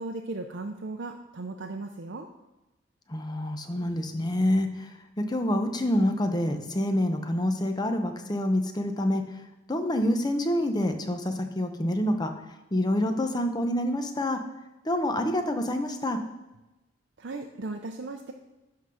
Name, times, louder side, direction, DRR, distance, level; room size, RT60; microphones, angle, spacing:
voice 1, 0.0-2.3 17.2-18.3, right 2 dB, 60° right, 2 dB, 0.6 m, -36 dB
voice 2, 3.1-9.2 9.7-12.3 12.7-14.4 14.8-16.2, left 1 dB, 20° left, 6 dB, 0.7 m, -27 dB
11.5 x 3.8 x 6.3 m, 1.0 s
head